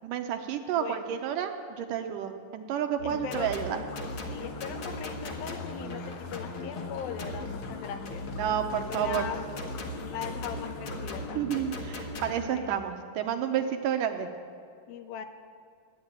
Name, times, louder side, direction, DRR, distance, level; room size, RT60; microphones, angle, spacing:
voice 1, 0.0-3.8 8.4-9.3 11.3-14.3, right 9 dB, 80° right, 6 dB, 2.2 m, -30 dB
voice 2, 0.8-1.2 3.0-3.5 4.3-8.4 8.9-9.4 10.1-11.7 12.4-12.8 14.9-15.3, left 8 dB, 85° left, 8 dB, 2.7 m, -39 dB
sound 1, 3.0-12.3, left 2 dB, 50° left, 1.7 m, -38 dB
sound 2, 3.1-11.8, left 6 dB, 70° left, 2.2 m, -47 dB
13.5 x 10.5 x 8.9 m, 2.3 s
omnidirectional pair, 4.1 m